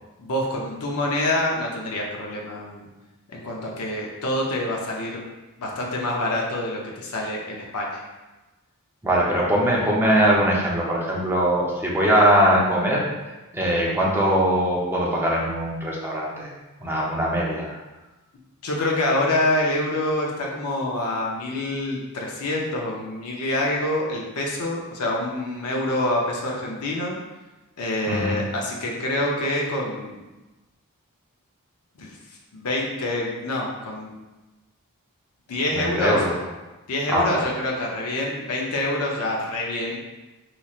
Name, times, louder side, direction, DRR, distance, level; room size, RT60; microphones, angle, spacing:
voice 1, 0.2-2.9 3.3-5.2 5.6-8.0 12.5-12.6 18.6-27.2 27.8-30.2 32.0-32.2 32.5-34.1 35.5-36.2 36.9-40.0, left 1 dB, 90° left, -2 dB, 0.6 m, -26 dB
voice 2, 9.0-13.0 13.5-16.5 16.8-17.8 28.1-28.4 35.7-36.3 37.1-37.5, equal, 10° right, -4 dB, 0.7 m, -21 dB
4.0 x 3.0 x 2.4 m, 1.1 s
head